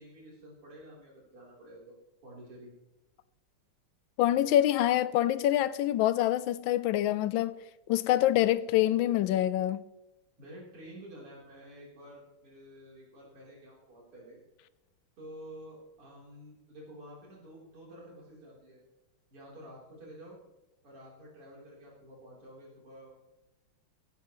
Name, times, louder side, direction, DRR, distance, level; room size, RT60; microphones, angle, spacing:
voice 1, 0.0-2.0 2.2-2.7 10.4-14.4 15.2-18.8 19.3-20.4 20.8-23.1, equal, 80° right, 4.6 m, -50 dB
voice 2, 4.2-7.6 7.9-9.8, left 13 dB, 75° left, 1.2 m, -26 dB
16.5 x 14.0 x 3.1 m
omnidirectional pair, 2.4 m